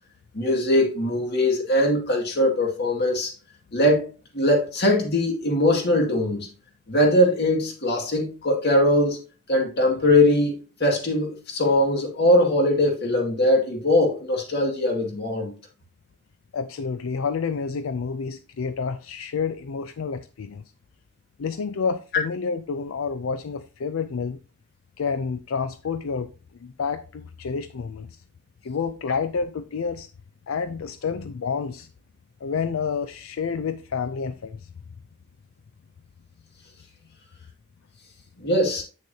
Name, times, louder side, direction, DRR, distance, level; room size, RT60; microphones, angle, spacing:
voice 1, 0.3-3.3 3.7-4.1 4.3-6.5 6.9-9.2 9.5-15.5 38.4-38.8, left 1 dB, 55° left, 2.1 m, -21 dB
voice 2, 16.5-20.7 21.4-24.4 25.0-26.3 26.6-28.2 28.6-30.1 30.5-31.9 32.4-34.7, left 5 dB, 85° left, 0.4 m, -29 dB
8.5 x 6.4 x 2.7 m
head